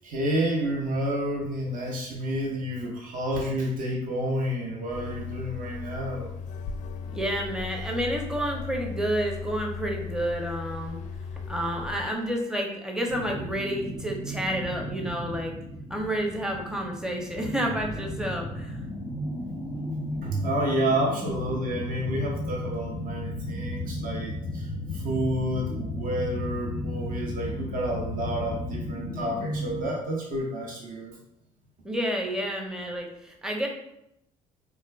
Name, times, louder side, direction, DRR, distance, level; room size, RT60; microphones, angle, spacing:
voice 1, 0.0-6.3 20.2-31.2, right 1 dB, 45° right, -1 dB, 0.8 m, -30 dB
sound 1, 4.9-12.1, left 5 dB, 40° left, 0.4 m, -37 dB
voice 2, 7.1-11.0 11.4-15.5 15.9-18.8 21.1-21.3 31.8-33.7, equal, 5° right, 1 dB, 0.8 m, -30 dB
sound 2, 13.1-29.9, left 1 dB, 85° right, 1.5 m, -34 dB
4.1 x 2.3 x 2.4 m, 0.79 s
figure-of-eight pair, 50°, 19 cm